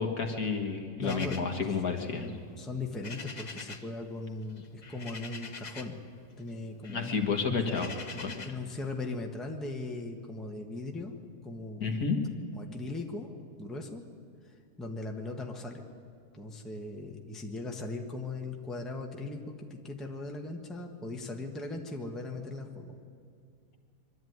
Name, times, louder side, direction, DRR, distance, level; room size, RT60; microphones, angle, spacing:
voice 1, 0.0-2.3 6.9-7.9 8.2-8.3 11.8-12.2, left 5 dB, 60° left, 3 dB, 2.1 m, -30 dB
sound 1, 1.0-4.0 4.2-6.1 6.4-8.7, left 4 dB, 35° left, 0.8 m, -46 dB
voice 2, 1.0-1.4 2.2-6.0 6.4-7.1 7.7-7.9 8.4-11.2 11.4-12.0 12.5-13.3 13.6-14.0 14.8-15.8 16.3-23.0, left 2 dB, ahead, 2 dB, 1.2 m, -39 dB
23.0 x 12.5 x 9.5 m, 2.3 s
omnidirectional pair, 1.8 m